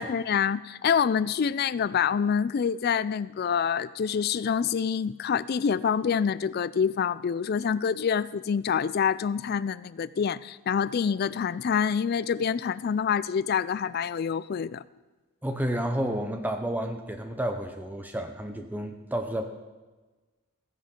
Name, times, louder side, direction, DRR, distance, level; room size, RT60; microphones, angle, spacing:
voice 1, 0.0-14.8, left 7 dB, 45° left, 18 dB, 0.3 m, -26 dB
voice 2, 15.4-19.5, right 1 dB, 10° right, 5 dB, 0.7 m, -31 dB
15.5 x 10.0 x 3.7 m, 1.3 s
head